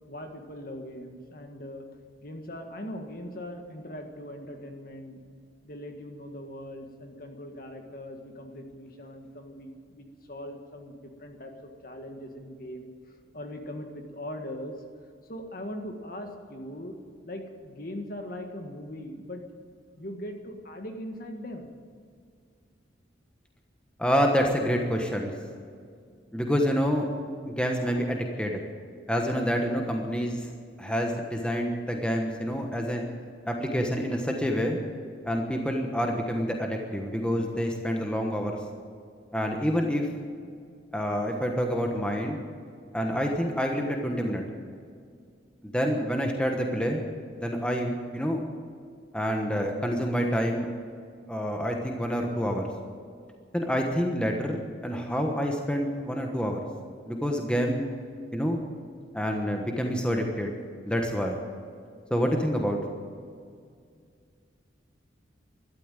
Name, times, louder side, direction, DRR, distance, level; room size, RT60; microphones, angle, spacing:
voice 1, 0.1-1.8 2.2-5.2 5.6-12.9 13.3-14.7 15.3-17.0 17.2-19.4 20.0-21.7, left 1 dB, 50° left, 4 dB, 1.7 m, -40 dB
voice 2, 24.0-25.3 26.3-27.1 27.4-28.6 29.1-30.5 30.8-33.0 33.5-34.8 35.2-38.6 39.3-40.1 40.9-42.4 42.9-44.4 45.6-47.0 47.3-48.4 49.1-50.7 51.3-52.7 53.5-56.6 57.1-57.8 58.3-58.6 59.1-60.5 60.8-61.4 62.1-62.8, equal, 5° left, 2 dB, 1.2 m, -27 dB
12.5 x 12.5 x 9.1 m, 2.2 s
head